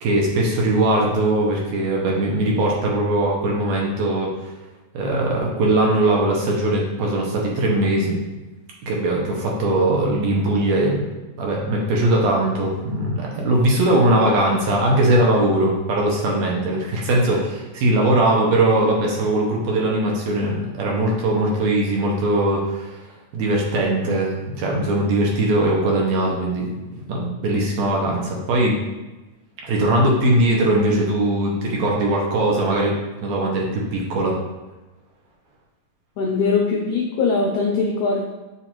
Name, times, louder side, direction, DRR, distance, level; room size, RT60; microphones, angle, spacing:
voice 1, 0.0-4.3 4.9-8.2 8.8-11.1 11.4-23.0 23.3-26.7 27.1-28.8 29.6-32.9 33.2-34.4, right 1 dB, 70° right, -2 dB, 1.8 m, -20 dB
voice 2, 36.2-38.3, left 4 dB, 80° left, -2 dB, 1.8 m, -21 dB
7.0 x 2.5 x 2.9 m, 1.1 s
omnidirectional pair, 3.6 m